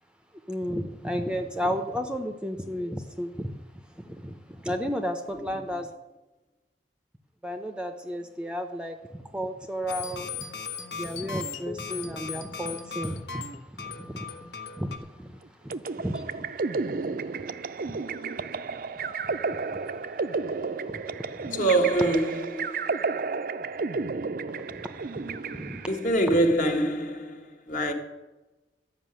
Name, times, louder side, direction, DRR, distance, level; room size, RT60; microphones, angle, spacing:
voice 1, 0.5-3.5 3.9-5.9 7.4-10.3 10.9-16.8 17.2-20.3 20.8-21.6 24.6-25.9, equal, 5° right, 0.7 m, -34 dB
sound 1, 9.9-15.0, left 6 dB, 75° left, 1.4 m, -37 dB
sound 2, 15.7-26.1, right 4 dB, 50° right, 0.5 m, -32 dB
voice 2, 21.5-22.8 25.9-27.9, right 1 dB, 45° left, 1.7 m, -25 dB
13.0 x 6.0 x 9.1 m
head